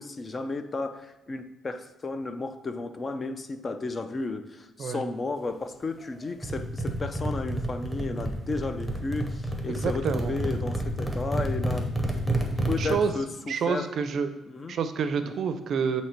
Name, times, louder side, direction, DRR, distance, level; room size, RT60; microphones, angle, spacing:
voice 1, 0.0-11.9 12.7-13.3 13.7-13.9 14.5-14.8 15.2-15.3, left 3 dB, 35° left, 9 dB, 0.5 m, -33 dB
sound 1, 6.4-12.9, right 1 dB, ahead, 1.0 m, -29 dB
voice 2, 9.7-10.3 12.8-13.1 13.5-14.3 14.7-16.0, right 6 dB, 60° right, 9 dB, 0.5 m, -28 dB
7.9 x 2.8 x 4.4 m, 1.1 s
cardioid pair, 95°, 0 cm